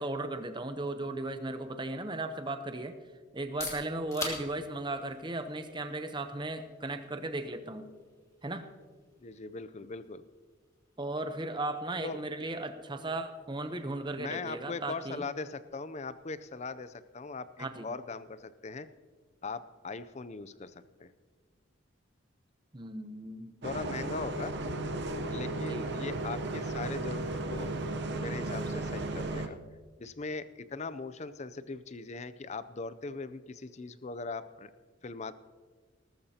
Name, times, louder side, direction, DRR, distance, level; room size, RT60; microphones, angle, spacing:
voice 1, 0.0-2.9 3.3-7.9 8.4-8.7 11.0-15.2 17.6-17.9 22.7-23.5 25.6-25.9, right 2 dB, 25° right, 9 dB, 0.8 m, -36 dB
sound 1, 3.3-19.0, left 2 dB, 15° left, 2.3 m, -49 dB
voice 2, 9.2-10.2 12.0-12.2 14.2-18.9 19.4-21.1 23.6-24.5 25.3-27.7 28.2-29.6 30.0-34.7 35.0-35.3, left 4 dB, 35° left, 14 dB, 0.5 m, -40 dB
Bus, 23.6-29.5, right 2 dB, 55° right, 0.8 m, -35 dB
19.0 x 13.5 x 2.9 m, 1.5 s
head